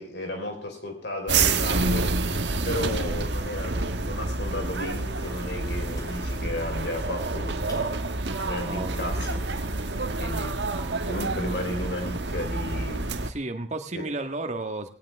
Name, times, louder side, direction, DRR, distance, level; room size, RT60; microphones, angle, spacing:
voice 1, 0.0-2.1 2.6-7.9 8.4-9.4 10.2-10.6 11.1-13.1 13.9-14.1, left 1 dB, 70° left, 3 dB, 4.8 m, -34 dB
sound 1, 1.3-13.3, right 3 dB, 75° right, 1.4 m, -28 dB
Sliding door, 4.7-11.1, right 1 dB, 20° left, 3.0 m, -48 dB
voice 2, 8.6-9.1 13.2-14.9, right 2 dB, 40° right, 6 dB, 1.7 m, -33 dB
18.0 x 17.5 x 3.6 m, 0.43 s
head